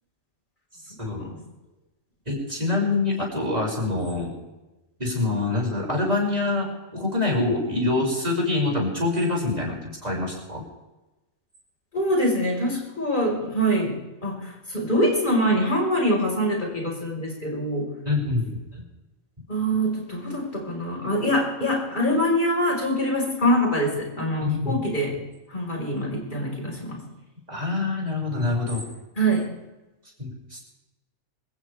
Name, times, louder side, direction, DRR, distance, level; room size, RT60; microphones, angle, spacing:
voice 1, 2.3-4.3 5.0-10.6 18.0-18.6 24.4-24.9 27.5-28.8 30.2-30.6, left 2 dB, 30° right, -3 dB, 6.6 m, -25 dB
voice 2, 11.9-17.9 19.5-25.1 25.5-27.0 29.2-29.5, equal, 35° left, -1 dB, 5.6 m, -24 dB
26.5 x 15.0 x 3.6 m, 1.0 s
omnidirectional pair, 1.4 m